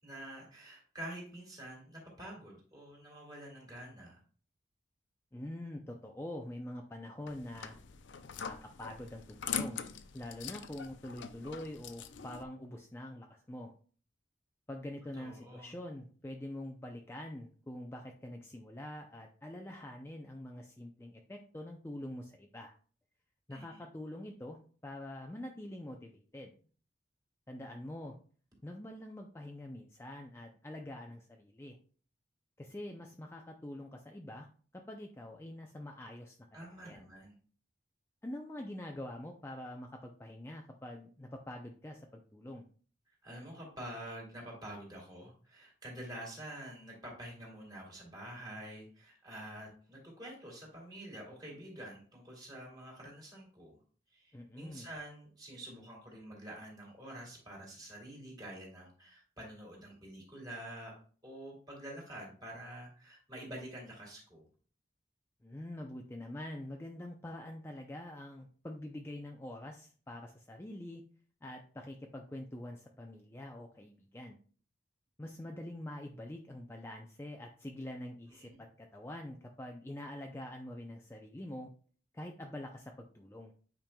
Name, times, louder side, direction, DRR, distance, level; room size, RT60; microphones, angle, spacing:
voice 1, 0.0-4.2 15.2-15.7 23.5-23.8 36.5-37.4 43.2-53.8 54.1-64.4 78.4-78.6, right 1 dB, 20° right, -3 dB, 2.7 m, -47 dB
voice 2, 5.3-7.8 8.4-9.8 10.1-13.7 14.7-22.7 23.5-26.5 27.5-28.2 28.6-31.8 32.6-34.5 34.7-37.0 38.2-42.6 54.3-54.9 65.4-71.0 71.4-74.4 75.2-81.7 82.1-83.5, left 1 dB, 15° left, 2 dB, 0.5 m, -45 dB
sound 1, 7.3-12.4, left 7 dB, 85° left, 0.5 m, -42 dB
8.7 x 5.2 x 2.2 m, 0.42 s
head